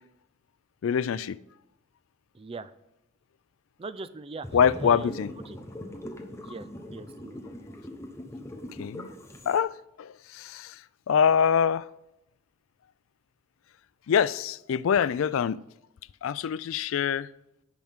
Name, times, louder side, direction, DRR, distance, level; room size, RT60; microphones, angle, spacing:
voice 1, 0.8-1.4 4.5-5.3 8.8-9.1 9.5-9.7 10.0-10.8 11.1-11.8 14.1-15.6 16.2-17.3, left 7 dB, 80° left, 0.4 m, -24 dB
voice 2, 2.3-2.7 3.8-4.5 4.8-5.6 6.3-7.4, right 3 dB, 25° right, 0.4 m, -41 dB
sound 1, 4.4-9.6, left 1 dB, 15° left, 1.0 m, -41 dB
17.0 x 5.9 x 3.6 m
head